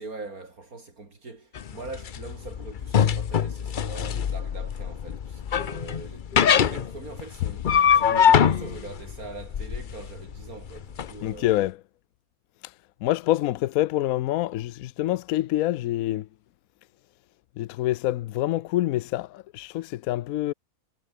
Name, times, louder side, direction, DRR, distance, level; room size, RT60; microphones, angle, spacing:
voice 1, 0.0-11.6, right 3 dB, 70° right, 4.2 m, -42 dB
sound 1, 1.5-11.1, left 8 dB, 45° left, 0.6 m, -23 dB
voice 2, 11.2-11.8 13.0-16.3 17.6-20.5, left 15 dB, 75° left, 1.0 m, -26 dB
omnidirectional pair, 1.6 m